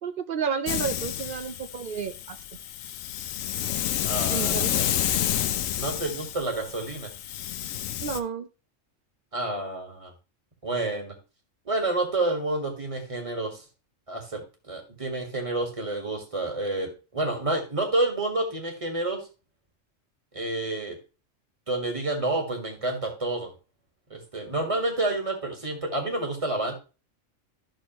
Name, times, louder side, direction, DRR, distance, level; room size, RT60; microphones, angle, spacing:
voice 1, 0.0-2.4 4.3-4.8 8.0-8.5, right 6 dB, 55° right, 11 dB, 0.6 m, -31 dB
Hiss, 0.7-8.2, left 11 dB, 80° left, 1.0 m, -29 dB
voice 2, 4.0-4.9 5.8-7.1 9.3-10.1 10.6-11.1 11.6-13.6 14.1-19.3 20.3-21.0 21.7-23.5 24.1-26.7, right 2 dB, 25° right, 3 dB, 1.7 m, -29 dB
12.0 x 6.1 x 2.9 m, 0.32 s
omnidirectional pair, 1.3 m